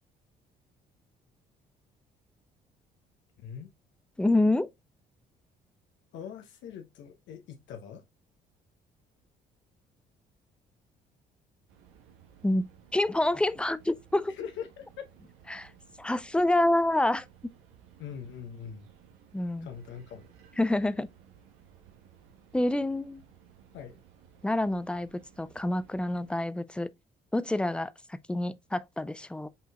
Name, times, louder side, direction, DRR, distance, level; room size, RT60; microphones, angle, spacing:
voice 1, 3.4-3.7 6.1-8.0 14.3-15.0 18.0-18.9 19.6-20.3 23.7-24.0, left 8 dB, 60° left, 0.8 m, -42 dB
voice 2, 4.2-4.7 12.4-14.3 15.5-15.7 16.0-17.2 19.3-19.7 20.6-21.1 22.5-23.2 24.4-25.1 25.4-26.9 27.3-29.5, left 1 dB, 5° left, 0.4 m, -27 dB
sound 1, 11.7-26.3, right 8 dB, 70° right, 1.1 m, -57 dB
5.5 x 3.8 x 2.3 m
hypercardioid pair, 50°, 21 cm